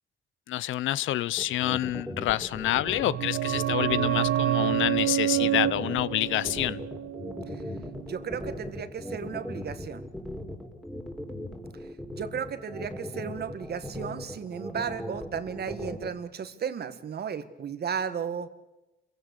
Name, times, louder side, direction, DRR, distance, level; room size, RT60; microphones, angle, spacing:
voice 1, 0.5-6.8, left 14 dB, 80° left, 20 dB, 0.7 m, -28 dB
sound 1, 1.4-16.1, left 1 dB, ahead, 3.7 m, -38 dB
sound 2, 2.6-8.1 8.3-8.4, right 12 dB, 70° right, 0.8 m, -28 dB
voice 2, 8.1-10.0 12.2-18.5, right 7 dB, 55° right, 12 dB, 1.8 m, -34 dB
27.5 x 16.5 x 8.3 m, 1.0 s
cardioid pair, 90°, 20 cm